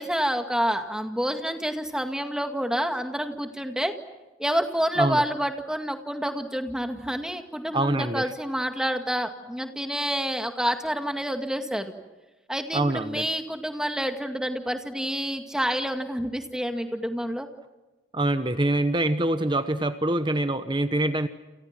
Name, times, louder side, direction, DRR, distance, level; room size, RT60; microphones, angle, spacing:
voice 1, 0.0-3.9 4.4-11.9 12.5-17.5, equal, 5° right, 6 dB, 2.1 m, -28 dB
voice 2, 7.7-8.2 12.7-13.2 18.1-21.3, right 1 dB, 25° right, 10 dB, 1.0 m, -25 dB
29.5 x 28.5 x 6.1 m, 1.1 s
head